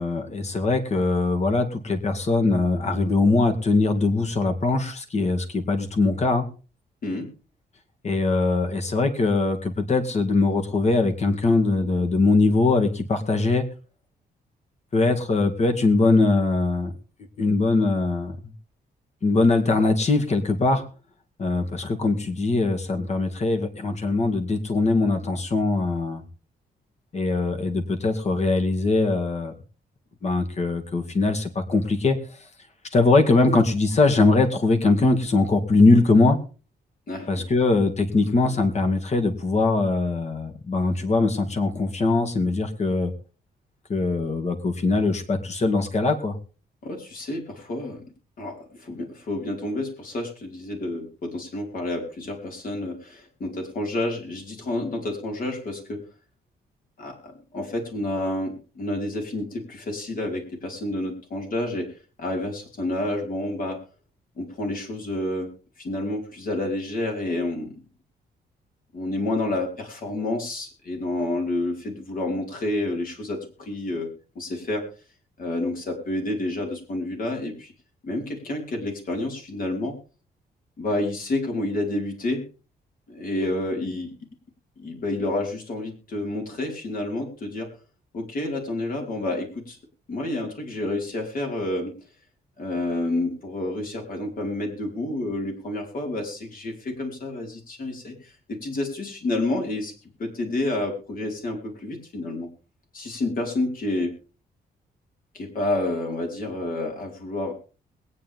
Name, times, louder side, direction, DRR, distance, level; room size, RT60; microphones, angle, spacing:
voice 1, 0.0-6.4 8.0-13.6 14.9-16.9 17.4-18.4 19.2-20.8 21.4-26.2 27.1-29.5 30.2-32.2 32.9-36.4 37.3-43.1 43.9-46.4, left 3 dB, 40° left, 6 dB, 2.3 m, -21 dB
voice 2, 37.1-37.5 46.8-48.0 48.4-56.0 57.0-61.9 62.2-63.8 64.4-65.5 65.8-67.8 68.9-74.1 74.3-74.8 75.4-77.7 78.0-79.9 80.8-82.4 83.1-84.1 84.8-87.7 88.1-89.8 90.1-91.9 92.6-99.9 100.2-102.5 102.9-104.1 105.3-107.5, left 2 dB, 55° left, 1 dB, 5.0 m, -29 dB
22.0 x 9.5 x 3.6 m, 0.36 s
cardioid pair, 115°, 17 cm